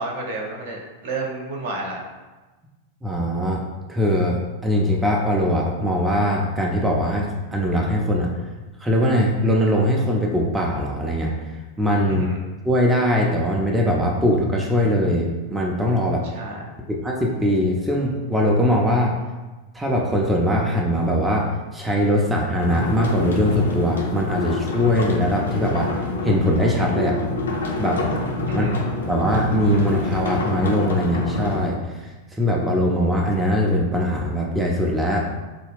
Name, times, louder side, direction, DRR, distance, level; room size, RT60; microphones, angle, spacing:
voice 1, 0.0-2.0 12.1-12.4 16.3-16.6 28.5-28.8, right 2 dB, 55° right, -1 dB, 0.7 m, -30 dB
voice 2, 3.0-3.6 3.9-8.3 8.8-11.4 11.8-12.3 12.6-16.2 17.0-19.1 19.7-25.9 26.2-27.2 27.8-28.0 28.5-28.7 29.1-35.3, equal, 5° right, -2 dB, 0.4 m, -21 dB
sound 1, 22.6-31.7, left 2 dB, 70° left, 0.5 m, -27 dB
3.7 x 2.2 x 3.4 m, 1.2 s
figure-of-eight pair, 90°, 0 cm